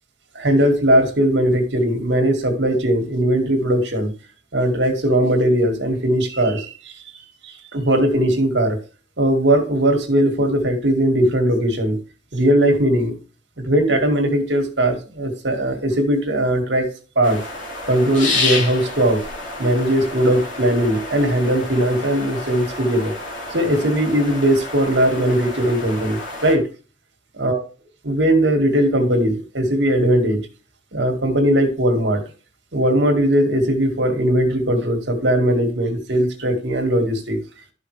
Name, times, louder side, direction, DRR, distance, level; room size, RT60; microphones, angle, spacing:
voice 1, 0.3-4.1 4.5-7.0 7.4-8.8 9.2-12.0 12.3-13.2 13.6-16.9 17.2-17.4 17.9-19.2 19.6-23.1 23.5-26.7 27.4-27.6 28.0-30.4 30.9-32.2 32.7-37.4, right 1 dB, 65° right, 4 dB, 2.0 m, -19 dB
sound 1, 17.2-26.6, left 2 dB, 85° left, 2.6 m, -29 dB
12.0 x 5.7 x 3.3 m, 0.36 s
head